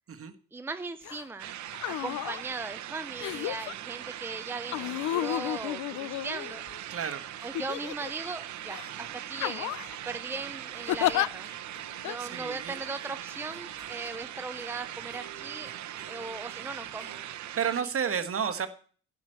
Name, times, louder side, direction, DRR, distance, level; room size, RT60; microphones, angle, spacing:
voice 1, 0.5-1.5 1.9-6.6 7.4-9.7 10.1-11.5 12.0-15.7 16.1-17.2 18.1-18.2, right 3 dB, 10° right, 9 dB, 0.7 m, -38 dB
sound 1, 1.0-1.2 1.7-2.4 3.2-3.7 4.7-6.8 7.5-8.3 8.7-8.9 9.4-10.0 10.9-11.3 12.0-12.2, left 14 dB, 75° left, 0.5 m, -31 dB
sound 2, 1.4-17.8, right 12 dB, 70° right, 0.9 m, -41 dB
Appalachian Dulcimer Jam, 4.9-17.2, right 1 dB, 45° left, 3.6 m, -56 dB
voice 2, 6.9-7.3 12.0-12.8 17.6-18.7, right 7 dB, 50° right, 8 dB, 1.5 m, -31 dB
12.0 x 6.0 x 7.7 m, 0.43 s
cardioid pair, 90°, 30 cm